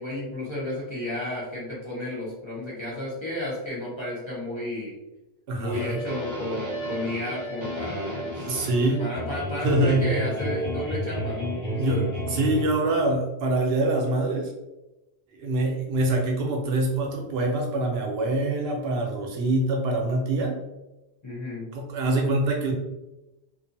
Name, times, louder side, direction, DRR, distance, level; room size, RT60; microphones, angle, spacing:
voice 1, 0.0-5.0 5.6-8.7 9.0-12.1 21.2-21.7, left 1 dB, 30° left, -6 dB, 0.8 m, -32 dB
voice 2, 5.5-6.0 8.5-9.0 9.6-10.1 11.8-14.5 15.3-20.6 21.7-22.7, right 2 dB, 75° right, 1 dB, 0.8 m, -25 dB
sound 1, 5.7-12.6, equal, 25° right, 0.5 m, -32 dB
2.6 x 2.4 x 2.5 m, 0.98 s
omnidirectional pair, 1.1 m